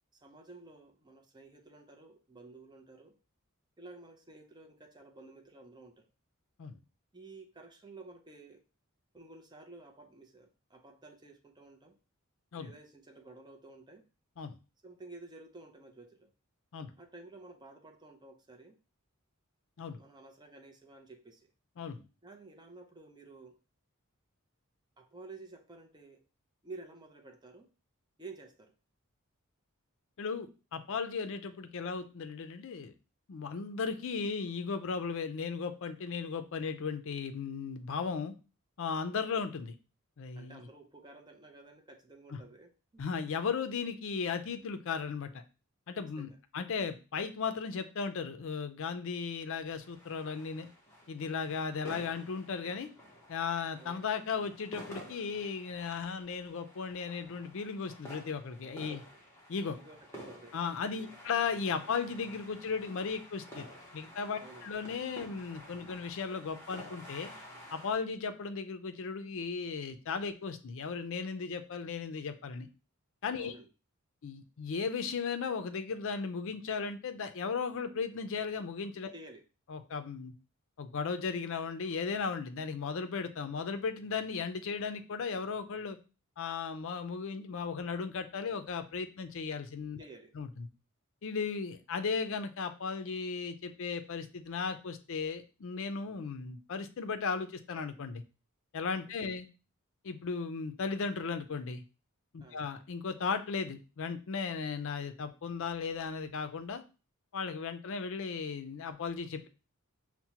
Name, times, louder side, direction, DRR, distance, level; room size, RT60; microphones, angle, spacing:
voice 1, 0.2-3.2 3.8-6.1 7.1-8.6 9.1-12.0 12.6-14.1 14.8-16.3 17.0-18.8 20.0-21.5 22.2-23.6 25.0-26.2 26.6-27.7 28.2-28.7 40.4-43.0 46.0-46.4 53.8-54.0 58.7-59.1 59.7-61.2 64.4-64.7 73.4-73.7 79.1-79.4 90.0-90.3 102.4-102.6, right 3 dB, 20° right, 4 dB, 0.5 m, -52 dB
voice 2, 30.2-32.9 33.3-38.3 38.8-39.7 40.2-40.6 42.3-42.4 43.0-45.3 45.9-50.7 51.1-52.9 53.3-59.0 59.5-59.8 60.5-63.7 63.9-67.3 67.7-72.7 73.2-73.5 74.2-79.1 79.7-80.3 80.8-86.0 86.4-90.0 90.3-90.7 91.2-98.2 98.7-99.5 100.0-101.8 102.3-106.8 107.3-109.5, left 5 dB, 65° left, 8 dB, 0.5 m, -36 dB
sound 1, 49.8-67.9, equal, 10° left, 0.8 m, -51 dB
5.8 x 2.1 x 2.8 m, 0.33 s
head